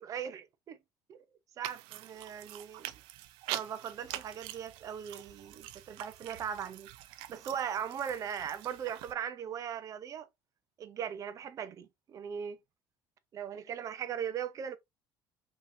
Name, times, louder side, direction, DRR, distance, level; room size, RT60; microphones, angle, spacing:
voice 1, 0.0-0.8 1.1-1.2 1.6-2.9 3.5-6.9 7.3-10.3 10.8-12.6 13.3-14.8, right 8 dB, 40° right, 0.8 m, -39 dB
sound 1, 1.6-9.1, right 14 dB, 85° right, 0.5 m, -45 dB
5.5 x 3.1 x 2.7 m
cardioid pair, 140°, 9 cm